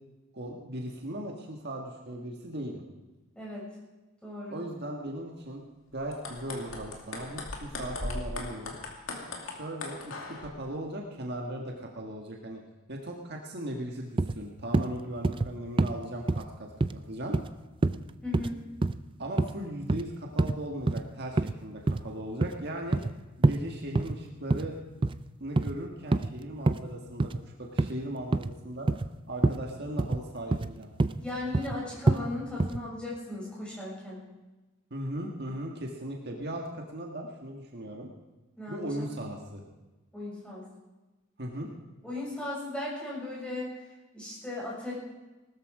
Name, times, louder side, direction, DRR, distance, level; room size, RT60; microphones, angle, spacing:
voice 1, 0.3-2.8 4.5-5.6 5.9-8.8 9.4-12.6 12.9-17.4 19.2-23.0 23.4-24.8 25.4-28.9 29.3-30.9 34.9-36.6 36.9-38.1 38.7-39.6 41.4-41.7, right 1 dB, 50° right, 0 dB, 1.7 m, -38 dB
voice 2, 3.4-3.7 4.2-4.6 18.2-18.6 31.2-34.2 38.6-39.1 40.1-40.6 42.0-43.7 44.1-44.9, left 2 dB, 5° left, -6 dB, 6.9 m, -37 dB
sound 1, 6.0-10.5, left 2 dB, 70° left, 2.6 m, -39 dB
sound 2, 14.2-14.4 14.7-14.9 15.2-15.5 15.8-15.9 16.3-16.4 16.8-17.0 17.3-17.5 17.8-18.0 18.3-18.5 18.8-19.0 19.4-19.5 19.9-20.0 20.4-20.6 20.9-21.0 21.4-21.6 21.9-22.0 22.4-23.1 23.4-23.6 24.0-24.2 24.5-24.7 25.0-25.2 25.6-25.7 26.1-26.3 26.7-26.8 27.2-27.4 27.8-27.9 28.3-28.5 28.9-29.1 29.4-29.6 30.0-30.2 30.5-30.7 31.0-31.2 31.5-31.8 32.1-32.2 32.6-32.8, right 2 dB, 25° right, 0.4 m, -26 dB
19.0 x 13.0 x 4.9 m, 1.1 s
head